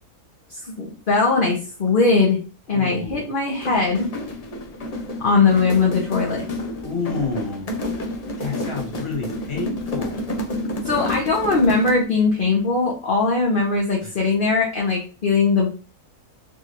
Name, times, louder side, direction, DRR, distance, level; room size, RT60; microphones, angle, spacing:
voice 1, 0.5-2.4 2.7-4.1 5.2-6.4 10.8-15.7, left 4 dB, 45° left, -1 dB, 0.8 m, -20 dB
voice 2, 2.7-3.3 6.8-7.7 8.4-10.2 14.0-14.1, left 4 dB, 20° left, -3 dB, 1.2 m, -29 dB
sound 1, 3.5-12.2, left 1 dB, 75° left, 0.3 m, -30 dB
3.8 x 2.9 x 2.5 m, 0.35 s
omnidirectional pair, 1.6 m